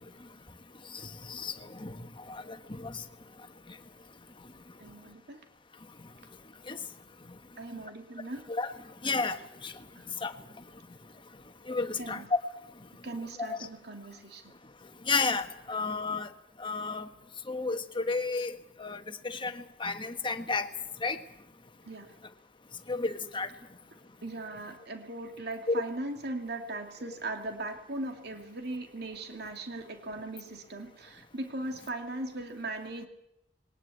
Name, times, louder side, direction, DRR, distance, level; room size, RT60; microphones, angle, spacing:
voice 1, 0.9-3.0 6.7-6.8 8.5-8.7 9.0-9.7 10.2-10.3 11.7-12.4 13.5-13.6 15.1-16.3 16.6-17.1 17.5-20.7 21.0-21.2 22.9-23.5 25.7-25.8, left 4 dB, 30° left, 8 dB, 1.5 m, -32 dB
voice 2, 4.8-5.4 7.6-8.4 10.0-10.1 12.0-12.3 13.0-14.5 21.9-22.1 24.2-33.1, right 2 dB, 65° right, 4 dB, 2.6 m, -39 dB
21.0 x 18.5 x 8.6 m, 0.83 s
head